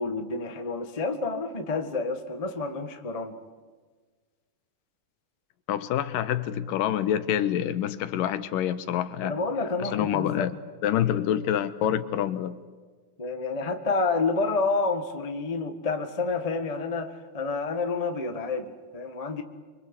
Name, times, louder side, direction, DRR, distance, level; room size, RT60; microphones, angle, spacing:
voice 1, 0.0-3.4 9.2-10.5 13.2-19.4, left 3 dB, 60° left, 6 dB, 0.3 m, -29 dB
voice 2, 5.7-9.4 9.8-10.5 10.8-12.6, left 10 dB, 80° left, 12 dB, 2.6 m, -27 dB
26.0 x 25.0 x 8.3 m, 1.4 s
omnidirectional pair, 3.9 m